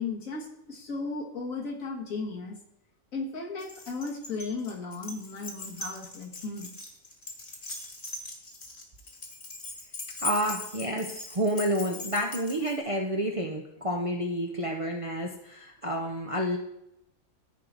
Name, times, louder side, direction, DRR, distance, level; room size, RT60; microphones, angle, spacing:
voice 1, 0.0-2.6 3.1-6.7, left 4 dB, 80° left, 0 dB, 1.8 m, -35 dB
Keys jangling, 3.6-12.8, left 2 dB, 40° left, 1.6 m, -40 dB
voice 2, 10.2-16.6, equal, 30° right, 0 dB, 0.6 m, -29 dB
14.0 x 4.7 x 3.9 m, 0.81 s
omnidirectional pair, 1.4 m